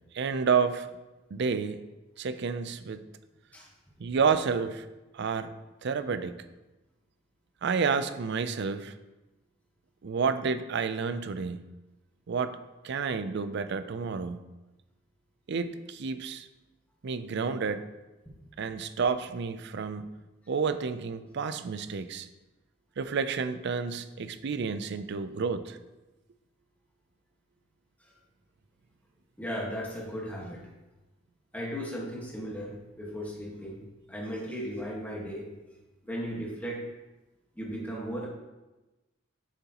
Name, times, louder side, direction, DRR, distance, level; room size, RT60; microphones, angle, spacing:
voice 1, 0.1-0.9 1.3-1.9 2.2-3.1 4.0-4.8 5.1-5.5 5.8-6.4 7.6-9.0 10.0-11.7 12.3-12.6 12.8-14.5 15.5-16.5 17.0-17.9 18.6-20.2 20.5-22.3 23.0-25.8, right 5 dB, 60° right, 11 dB, 0.4 m, -30 dB
voice 2, 29.4-30.7 31.5-33.8 34.1-35.5 36.0-36.8 37.5-38.3, equal, 10° left, -3 dB, 1.5 m, -36 dB
7.5 x 6.9 x 2.9 m, 1.1 s
head